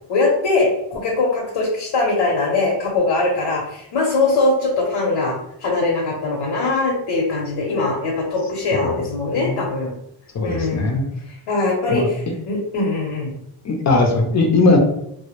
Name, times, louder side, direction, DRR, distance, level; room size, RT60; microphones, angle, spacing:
voice 1, 0.1-9.9 10.4-11.0 11.3-12.2 12.5-13.3, left 3 dB, 75° left, -2 dB, 0.7 m, -21 dB
voice 2, 9.3-9.6 10.3-11.1 11.9-12.1 13.6-14.8, left 3 dB, 35° left, 3 dB, 0.5 m, -19 dB
2.1 x 2.0 x 2.9 m, 0.75 s
cardioid pair, 120°, 48 cm